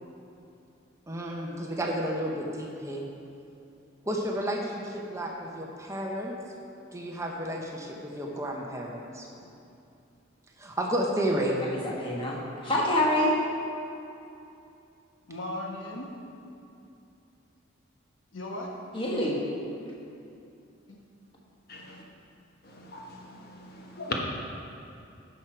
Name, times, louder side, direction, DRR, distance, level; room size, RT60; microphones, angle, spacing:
voice 1, 1.1-3.1 4.1-6.3 6.9-9.3 10.6-11.6, equal, 15° right, 0 dB, 0.7 m, -31 dB
voice 2, 11.6-13.3 18.9-19.4, left 1 dB, 25° left, -4 dB, 1.4 m, -26 dB
voice 3, 15.3-16.1 18.3-18.7 20.9-21.0, left 1 dB, 75° left, -1 dB, 1.2 m, -36 dB
voice 4, 21.7-22.1 22.6-24.2, left 3 dB, 50° left, -1 dB, 1.2 m, -39 dB
10.5 x 6.2 x 4.5 m, 2.7 s
head